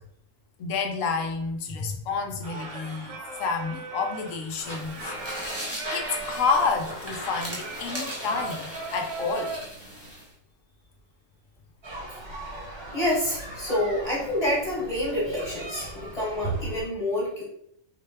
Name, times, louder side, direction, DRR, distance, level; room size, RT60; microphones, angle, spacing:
voice 1, 0.6-5.1 5.7-9.6, left 5 dB, 80° left, 4 dB, 1.0 m, -29 dB
Singing, 2.4-9.7, right 3 dB, 70° right, 0.9 m, -38 dB
sound 1, 4.5-10.3, equal, 15° right, 0.8 m, -37 dB
sound 2, 11.8-16.9, right 2 dB, 35° right, 0.4 m, -37 dB
voice 2, 12.9-17.4, left 1 dB, 30° left, -6 dB, 1.1 m, -28 dB
4.1 x 2.2 x 3.3 m, 0.70 s
omnidirectional pair, 1.3 m